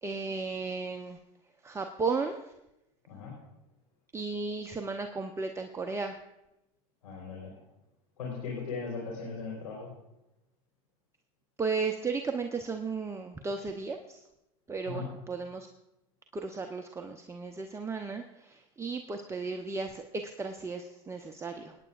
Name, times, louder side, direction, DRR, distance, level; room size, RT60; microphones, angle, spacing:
voice 1, 0.0-1.2 1.6-2.4 4.1-6.2 11.6-14.2 14.7-15.7 16.3-21.8, right 4 dB, 15° right, 4 dB, 0.7 m, -35 dB
voice 2, 7.0-7.6 8.2-9.9 14.8-15.1, left 4 dB, 85° left, -4 dB, 3.8 m, -38 dB
25.0 x 9.5 x 2.4 m, 0.89 s
hypercardioid pair, 90°, 19 cm